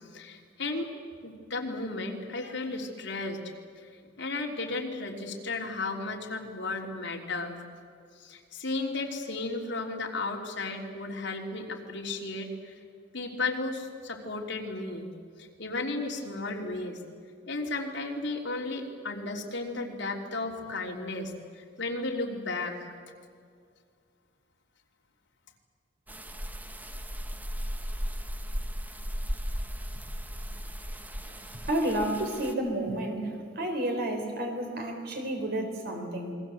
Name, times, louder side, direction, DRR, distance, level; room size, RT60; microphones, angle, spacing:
voice 1, 0.1-0.9 1.2-3.4 4.2-7.6 8.2-12.7 13.1-15.1 15.4-17.0 17.5-22.9, left 3 dB, 65° left, 0 dB, 3.3 m, -34 dB
sound 1, 26.1-32.5, equal, 10° right, 1.1 m, -36 dB
voice 2, 31.7-36.3, right 1 dB, 55° right, 4 dB, 4.0 m, -31 dB
28.5 x 22.5 x 7.9 m, 2.2 s
head